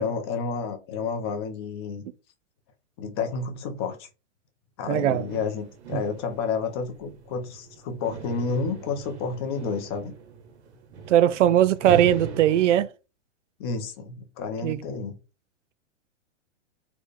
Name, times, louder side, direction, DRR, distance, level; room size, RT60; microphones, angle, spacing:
voice 1, 0.0-2.0 3.0-4.1 4.8-10.1 13.6-15.1, left 5 dB, 25° left, 0.4 m, -30 dB
sound 1, 4.9-12.8, right 5 dB, 65° right, 1.1 m, -39 dB
voice 2, 4.9-5.2 5.9-6.0 11.1-12.9 14.6-14.8, right 11 dB, 85° right, 0.5 m, -20 dB
4.0 x 2.1 x 3.2 m
hypercardioid pair, 155°, 36 cm